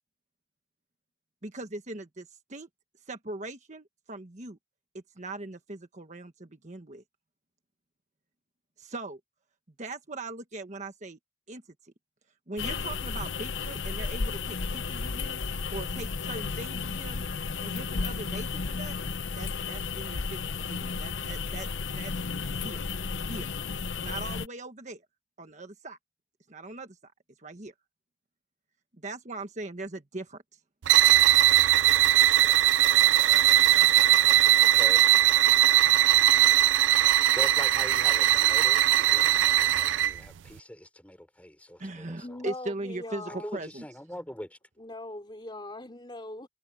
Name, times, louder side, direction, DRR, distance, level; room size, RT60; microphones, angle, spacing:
voice 1, 1.4-2.7 3.1-4.6 4.9-7.0 8.8-9.2 9.8-11.2 11.5-11.6 12.5-15.4 15.7-17.2 17.6-19.0 19.3-21.7 21.9-22.1 22.4-22.8 23.3-23.5 24.0-25.0 25.4-26.0 26.5-27.1 27.4-27.7 29.0-30.4 41.8-43.8, right 2 dB, 40° right, 1.4 m, -40 dB
sound 1, 12.6-24.5, left 4 dB, 90° left, 0.9 m, -33 dB
sound 2, 30.8-40.2, right 13 dB, 75° right, 0.4 m, -20 dB
voice 2, 34.6-35.1 35.4-35.5 36.5-42.4 43.3-44.5, equal, 10° left, 5.8 m, -43 dB
voice 3, 42.2-43.6 44.8-46.5, left 2 dB, 25° left, 3.1 m, -41 dB
head